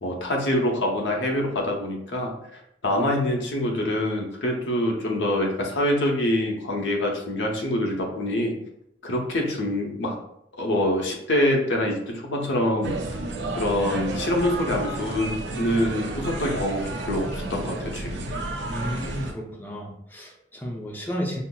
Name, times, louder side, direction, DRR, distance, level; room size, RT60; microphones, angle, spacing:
voice 1, 0.0-8.6 9.0-10.2 10.6-13.0 13.6-18.3, left 1 dB, 85° left, 0 dB, 0.8 m, -25 dB
sound 1, 12.8-19.3, right 2 dB, 80° right, 0.5 m, -31 dB
voice 2, 18.7-21.4, equal, 10° left, -1 dB, 0.6 m, -32 dB
5.6 x 2.0 x 2.3 m, 0.77 s
head